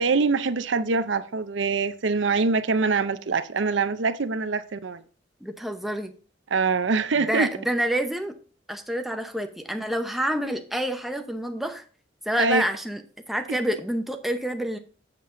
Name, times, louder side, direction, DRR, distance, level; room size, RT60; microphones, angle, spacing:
voice 1, 0.0-5.0 6.5-7.5 12.4-12.6 13.5-13.6, right 4 dB, 70° right, 0.6 m, -24 dB
voice 2, 5.4-6.1 7.2-8.3 8.7-11.8 12.3-14.8, right 1 dB, ahead, 0.7 m, -28 dB
7.5 x 7.4 x 3.7 m
head